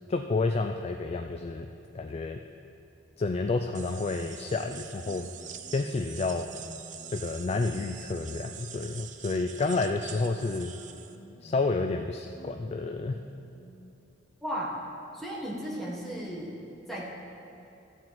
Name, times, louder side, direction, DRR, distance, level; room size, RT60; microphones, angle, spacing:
voice 1, 0.1-1.7 1.9-2.4 3.2-5.3 5.7-6.5 7.1-10.7 11.4-13.2, left 3 dB, 35° left, 5 dB, 0.3 m, -30 dB
sound 1, 3.7-11.2, right 8 dB, 40° right, 0.5 m, -45 dB
sound 2, 4.1-13.8, right 1 dB, 70° left, 1.8 m, -53 dB
voice 2, 14.4-14.8 15.1-16.5 16.9-17.0, equal, ahead, -5 dB, 1.6 m, -35 dB
13.0 x 4.6 x 7.6 m, 2.8 s
head